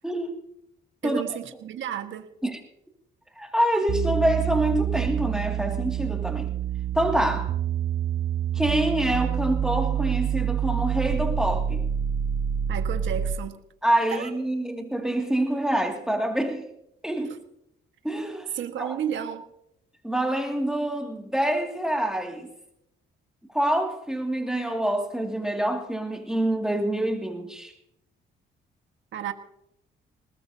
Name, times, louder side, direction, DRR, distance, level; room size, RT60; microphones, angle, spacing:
voice 1, 1.0-2.3 12.7-13.6 14.1-14.3 17.3-17.4 18.5-19.4 29.1-29.3, right 9 dB, 75° right, 1.6 m, -32 dB
voice 2, 3.4-6.5 6.9-7.5 8.5-11.8 13.8-16.7 17.0-17.3 18.0-18.5 18.8-18.9 20.0-22.5 23.5-27.7, right 1 dB, 5° right, 2.3 m, -26 dB
sound 1, 3.9-13.5, right 9 dB, 45° right, 0.6 m, -27 dB
20.0 x 19.5 x 2.8 m
cardioid pair, 90°, 20 cm